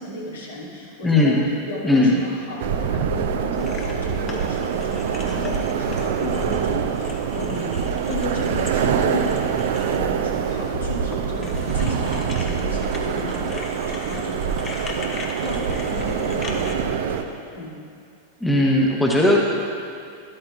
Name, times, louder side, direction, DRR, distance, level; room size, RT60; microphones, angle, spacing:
voice 1, 0.0-7.8 8.0-15.1 15.4-17.7, left 2 dB, 70° left, -6 dB, 2.6 m, -34 dB
voice 2, 1.0-1.4 1.8-2.1 18.4-19.4, left 1 dB, 5° left, -2 dB, 1.1 m, -17 dB
sound 1, 2.6-17.2, right 7 dB, 55° right, 0.5 m, -25 dB
sound 2, 3.6-16.7, left 4 dB, 30° left, 1.1 m, -38 dB
13.0 x 12.5 x 2.5 m, 2.5 s
figure-of-eight pair, 90°, 0 cm